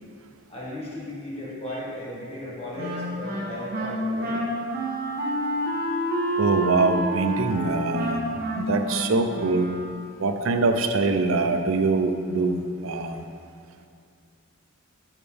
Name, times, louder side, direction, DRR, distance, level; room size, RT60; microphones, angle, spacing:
voice 1, 0.5-4.4, left 1 dB, 30° left, -7 dB, 1.6 m, -35 dB
Wind instrument woodwind instrument, 2.8-10.1, equal, 50° right, 1.2 m, -28 dB
voice 2, 6.4-8.3 8.6-9.7 10.2-13.2, right 3 dB, 70° right, 6 dB, 0.5 m, -24 dB
7.9 x 7.2 x 3.4 m, 2.4 s
head